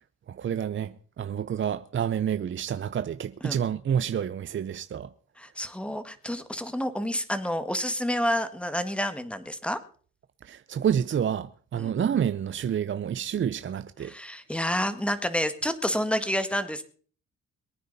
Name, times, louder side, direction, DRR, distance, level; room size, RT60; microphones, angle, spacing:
voice 1, 0.3-5.1 10.4-14.1, right 8 dB, 40° right, 0.7 m, -29 dB
voice 2, 5.4-9.8 11.7-11.9 14.0-16.8, equal, 5° left, 1.7 m, -29 dB
22.5 x 9.4 x 4.1 m
cardioid pair, 90°, 30 cm